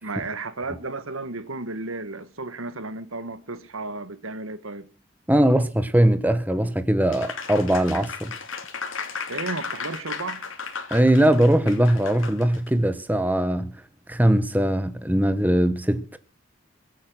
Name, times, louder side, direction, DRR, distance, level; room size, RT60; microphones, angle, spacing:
voice 1, 0.0-4.9 9.3-10.5, right 3 dB, 85° right, 1.6 m, -33 dB
voice 2, 5.3-8.3 10.9-13.8 14.1-16.2, right 1 dB, 10° right, 1.1 m, -20 dB
Applause, 7.1-12.7, left 5 dB, 75° left, 3.0 m, -35 dB
23.5 x 8.7 x 6.2 m
head